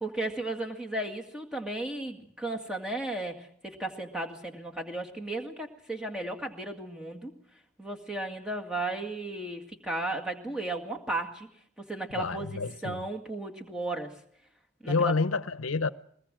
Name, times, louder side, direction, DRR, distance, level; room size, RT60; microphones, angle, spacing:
voice 1, 0.0-7.3 7.8-11.5 11.8-14.1 14.8-15.1, right 2 dB, 5° right, 2.1 m, -35 dB
voice 2, 12.2-13.0 14.9-15.9, left 4 dB, 80° left, 0.9 m, -28 dB
21.5 x 19.5 x 7.6 m
head